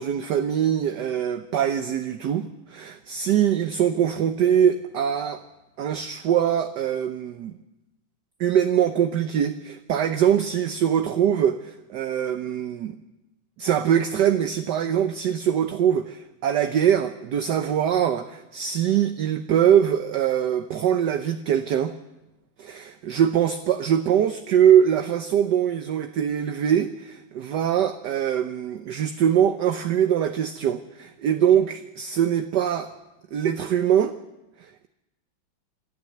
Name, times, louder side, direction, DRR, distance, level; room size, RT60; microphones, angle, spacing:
voice 1, 0.0-5.4 5.8-7.6 8.4-13.0 13.6-21.9 22.6-32.9 33.3-34.1 34.6-34.9, right 9 dB, 65° right, 8 dB, 1.3 m, -23 dB
26.5 x 12.5 x 7.9 m, 0.98 s
omnidirectional pair, 2.2 m